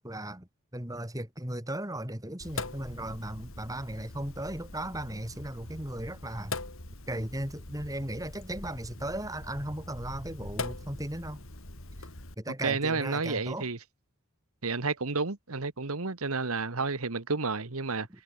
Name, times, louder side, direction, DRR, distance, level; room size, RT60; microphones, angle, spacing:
voice 1, 0.0-6.6 7.1-11.4 12.0-12.1 12.4-13.7, right 1 dB, 15° right, 3.1 m, -36 dB
Sink (filling or washing), 2.4-12.3, left 2 dB, 70° left, 3.5 m, -42 dB
voice 2, 12.6-13.8 14.6-18.1, right 4 dB, 85° right, 1.6 m, -31 dB
head